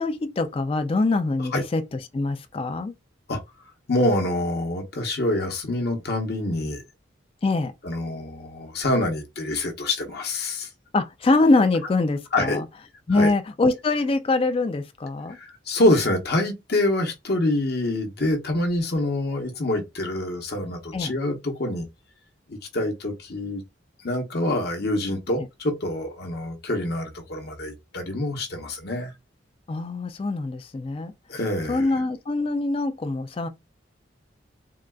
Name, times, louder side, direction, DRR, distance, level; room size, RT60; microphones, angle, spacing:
voice 1, 0.0-1.8 2.1-2.9 7.4-7.7 10.9-12.7 13.1-15.4 20.9-21.1 29.7-31.1 31.7-33.5, left 3 dB, 30° left, 0.3 m, -23 dB
voice 2, 3.9-6.8 7.8-10.7 12.3-12.6 13.1-13.3 15.3-21.9 22.5-23.6 24.0-29.1 31.3-31.9, left 1 dB, 55° left, 0.9 m, -26 dB
3.8 x 2.3 x 2.2 m
head